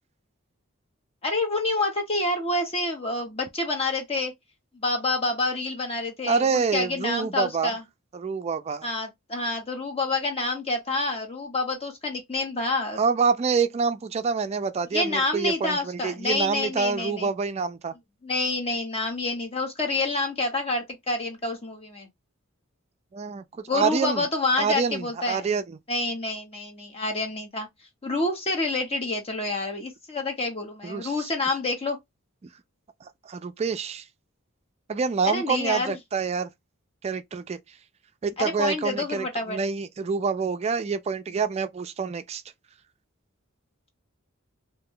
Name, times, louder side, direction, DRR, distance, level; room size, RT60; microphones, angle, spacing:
voice 1, 1.2-4.3 4.7-7.8 8.8-13.0 14.9-17.3 18.2-22.1 23.7-25.4 25.9-27.7 28.0-32.0 35.2-36.0 38.4-39.6, left 2 dB, 30° left, 1.0 m, -28 dB
voice 2, 6.3-7.7 8.1-8.9 13.0-17.9 23.1-24.3 24.6-25.8 30.8-31.3 33.0-34.1 34.9-36.5 37.0-37.8 38.2-42.4, right 5 dB, 30° right, 0.3 m, -27 dB
2.6 x 2.3 x 3.5 m
head